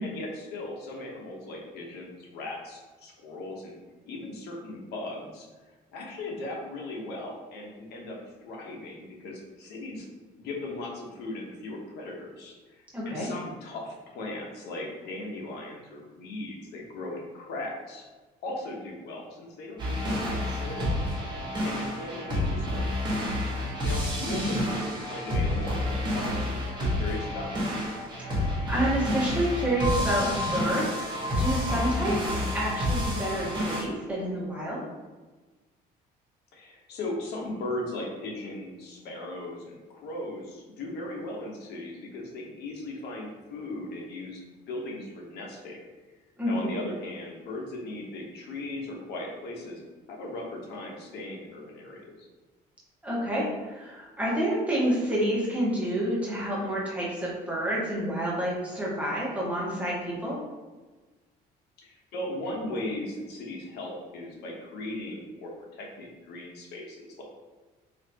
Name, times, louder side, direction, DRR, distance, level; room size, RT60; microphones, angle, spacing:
voice 1, 0.0-3.7 4.0-5.5 5.9-10.1 10.4-18.1 18.4-21.0 21.6-22.9 23.8-27.5 36.5-44.4 44.7-45.8 46.5-49.8 50.1-52.3 61.8-67.2, left 2 dB, 75° left, -1 dB, 1.0 m, -38 dB
voice 2, 12.9-13.3 24.3-24.5 28.7-34.8 46.4-46.7 53.0-60.4, right 1 dB, 10° right, -6 dB, 1.3 m, -29 dB
sound 1, 19.8-33.8, left 1 dB, 25° right, 1.2 m, -29 dB
4.0 x 2.9 x 2.9 m, 1.2 s
cardioid pair, 110°, 17 cm